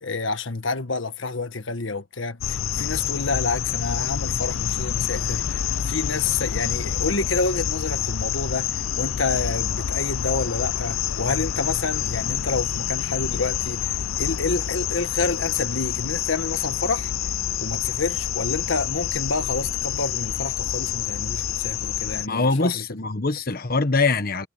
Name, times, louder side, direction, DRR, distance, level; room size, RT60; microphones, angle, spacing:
voice 1, 0.0-17.1 17.6-22.8, left 3 dB, 65° left, 1.5 m, -28 dB
sound 1, 2.4-22.3, left 9 dB, 80° left, 0.6 m, -27 dB
voice 2, 22.2-24.5, left 3 dB, 50° left, 1.4 m, -23 dB
head